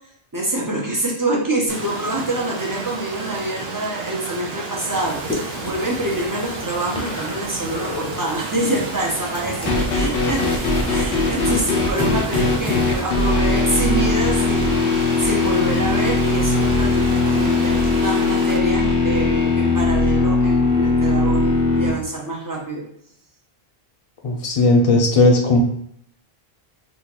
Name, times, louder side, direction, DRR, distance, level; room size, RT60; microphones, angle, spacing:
voice 1, 0.3-10.4 10.9-22.8, right 1 dB, 25° right, -3 dB, 0.6 m, -26 dB
Stream, 1.7-18.6, right 4 dB, 80° right, 0.9 m, -32 dB
sound 1, 4.9-13.0, left 1 dB, 5° left, 0.8 m, -32 dB
sound 2, 9.7-21.9, left 3 dB, 70° left, 0.8 m, -19 dB
voice 2, 24.2-25.6, left 2 dB, 40° left, 1 dB, 0.6 m, -16 dB
3.8 x 2.4 x 2.9 m, 0.67 s
omnidirectional pair, 1.0 m